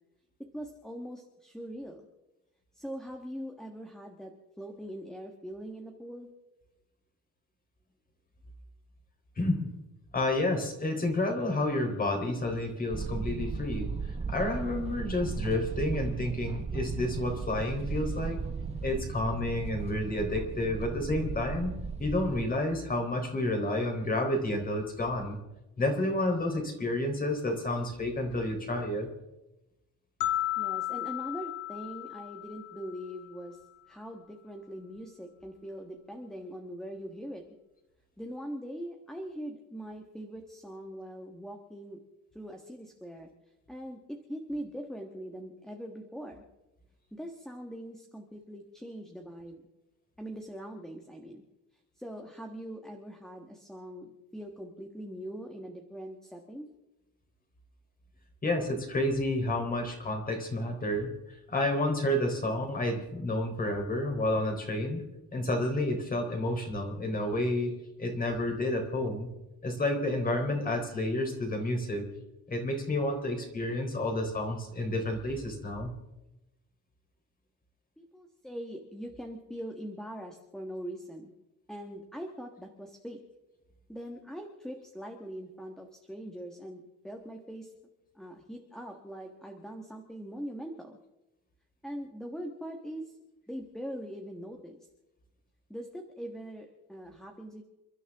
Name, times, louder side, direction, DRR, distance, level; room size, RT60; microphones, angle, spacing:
voice 1, 0.4-2.1 2.7-6.3 30.6-37.5 38.2-42.0 42.3-43.3 43.7-46.5 47.1-49.7 50.2-51.4 51.7-56.7 78.0-81.3 81.7-83.2 83.9-87.7 88.1-91.0 91.8-93.2 93.5-94.9 95.7-97.6, equal, ahead, 3 dB, 1.5 m, -42 dB
voice 2, 9.4-9.7 10.1-18.4 18.8-21.7 22.0-25.4 25.8-29.1 58.4-61.1 61.5-65.0 65.3-67.7 68.0-69.3 69.6-72.1 72.5-75.9, left 1 dB, 25° left, 3 dB, 3.7 m, -30 dB
sound 1, 12.9-22.4, right 5 dB, 20° right, 0.8 m, -36 dB
sound 2, 30.2-33.3, left 14 dB, 85° left, 1.8 m, -34 dB
29.5 x 13.0 x 3.6 m, 0.99 s
cardioid pair, 160°, 32 cm